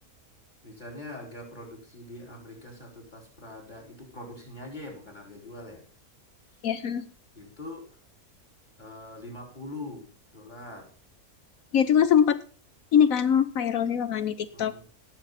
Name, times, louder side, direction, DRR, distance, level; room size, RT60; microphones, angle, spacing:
voice 1, 0.6-5.8 6.5-6.6 7.3-7.9 8.8-10.1 10.3-10.9 14.5-14.9, left 2 dB, 30° left, 1 dB, 4.8 m, -43 dB
voice 2, 6.6-7.1 11.7-12.4 12.9-14.9, left 8 dB, 70° left, 11 dB, 1.2 m, -23 dB
18.0 x 7.5 x 4.1 m, 0.40 s
omnidirectional pair, 1.6 m